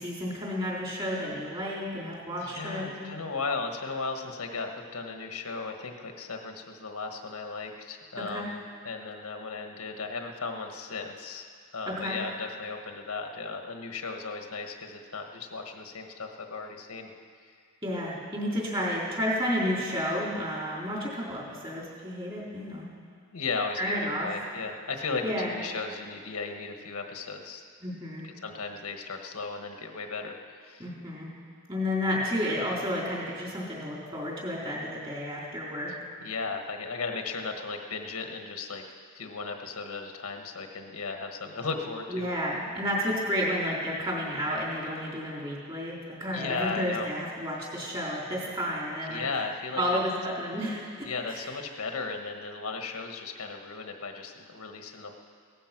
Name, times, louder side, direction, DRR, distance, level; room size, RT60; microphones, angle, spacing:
voice 1, 0.0-3.0 8.2-8.5 11.9-12.1 17.8-22.9 23.8-24.3 25.2-25.5 27.8-28.2 30.8-31.3 31.7-35.9 42.1-49.3 49.8-51.5, equal, 25° right, -4 dB, 3.8 m, -31 dB
voice 2, 2.4-11.5 11.7-17.1 23.3-27.6 28.2-30.4 30.6-30.8 35.9-38.8 39.1-42.3 46.3-47.1 49.0-50.0 51.1-55.2, left 4 dB, 90° left, 4 dB, 1.4 m, -36 dB
17.0 x 14.0 x 6.0 m, 2.1 s
head